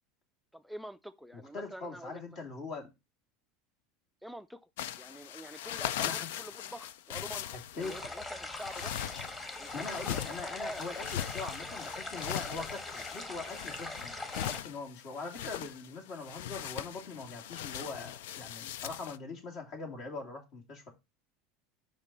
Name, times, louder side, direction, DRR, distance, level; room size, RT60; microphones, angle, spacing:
voice 1, 0.5-2.2 4.2-4.7 5.0-7.5 7.7-9.0 9.6-10.8 11.7-11.9, right 1 dB, ahead, 0.4 m, -46 dB
voice 2, 1.3-2.9 6.0-6.3 7.5-7.9 9.7-20.9, left 3 dB, 60° left, 2.7 m, -42 dB
sound 1, 4.8-19.2, left 11 dB, 80° left, 0.4 m, -40 dB
sound 2, 7.8-14.6, left 2 dB, 25° left, 1.8 m, -42 dB
5.3 x 5.1 x 4.2 m
supercardioid pair, 100°, 0 cm